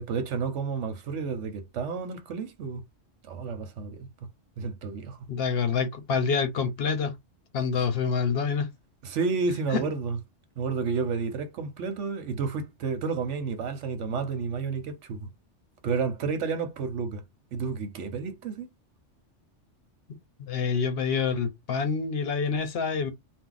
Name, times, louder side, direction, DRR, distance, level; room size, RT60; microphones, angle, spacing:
voice 1, 0.0-2.8 3.2-4.1 4.6-5.3 9.0-10.2 10.6-15.3 15.8-17.2 17.5-18.7, right 5 dB, 80° right, 1.1 m, -31 dB
voice 2, 5.3-7.2 7.5-8.7 9.7-9.9 20.4-23.1, left 5 dB, 60° left, 0.8 m, -27 dB
2.7 x 2.1 x 3.8 m
omnidirectional pair, 1.2 m